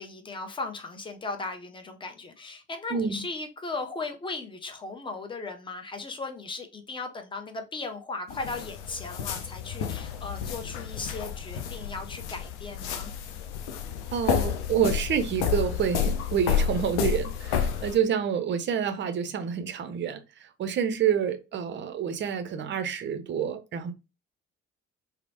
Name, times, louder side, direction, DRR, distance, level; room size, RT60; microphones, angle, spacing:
voice 1, 0.0-13.1, left 3 dB, 15° left, 0.6 m, -37 dB
voice 2, 2.9-3.2 14.1-23.9, right 8 dB, 30° right, 0.5 m, -28 dB
sound 1, 8.3-18.0, left 8 dB, 70° left, 0.5 m, -30 dB
2.9 x 2.0 x 2.7 m
figure-of-eight pair, 50°, 36 cm